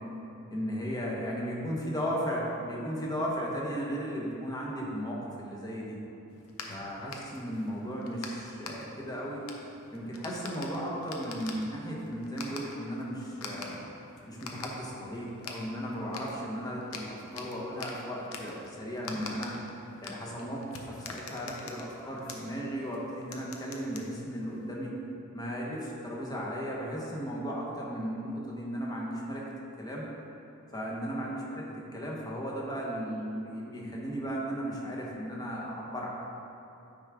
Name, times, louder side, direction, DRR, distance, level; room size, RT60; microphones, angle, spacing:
voice 1, 0.5-6.0 6.7-9.4 9.9-13.7 14.3-19.6 20.0-24.9 25.3-29.5 29.8-30.0 30.7-36.1, equal, 20° left, -3 dB, 1.1 m, -35 dB
sound 1, 6.3-24.7, left 3 dB, 80° left, 0.7 m, -46 dB
9.3 x 3.6 x 4.8 m, 2.8 s
head